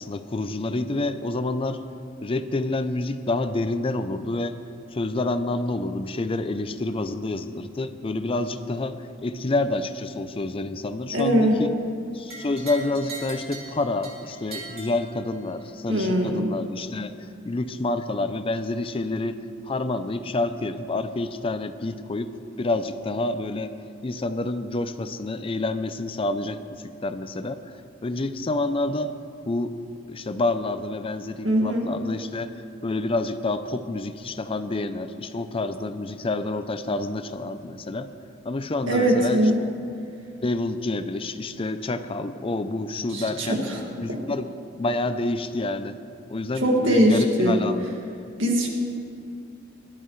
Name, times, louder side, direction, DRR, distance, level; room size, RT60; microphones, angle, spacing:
voice 1, 0.0-1.8 2.2-4.6 4.9-11.7 12.1-17.2 17.4-19.4 19.7-22.3 22.6-23.7 24.0-27.8 28.0-29.1 29.5-29.7 30.1-32.5 32.8-38.1 38.4-39.5 40.4-43.6 44.0-44.5 44.7-46.0 46.3-47.9 48.2-48.3, left 2 dB, 30° left, 11 dB, 0.5 m, -28 dB
voice 2, 11.1-11.6 15.9-16.5 31.4-31.9 38.9-39.6 43.1-43.8 44.1-44.2 46.6-47.6 48.4-48.7, equal, 80° right, -1 dB, 2.0 m, -21 dB
sound 1, 12.3-15.7, right 3 dB, 55° right, 3.1 m, -40 dB
19.0 x 12.0 x 3.2 m, 2.5 s
head